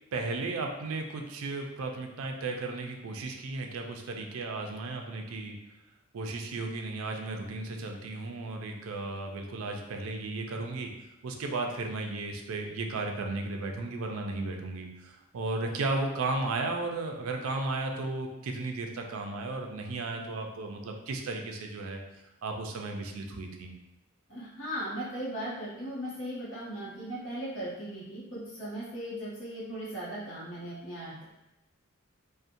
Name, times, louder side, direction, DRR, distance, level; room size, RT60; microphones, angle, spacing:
voice 1, 0.1-5.6 6.1-10.9 11.2-22.0 22.4-23.7, right 3 dB, 80° right, 3 dB, 0.4 m, -34 dB
voice 2, 24.3-31.2, right 1 dB, 60° left, -9 dB, 0.7 m, -38 dB
2.7 x 2.0 x 2.5 m, 0.93 s
head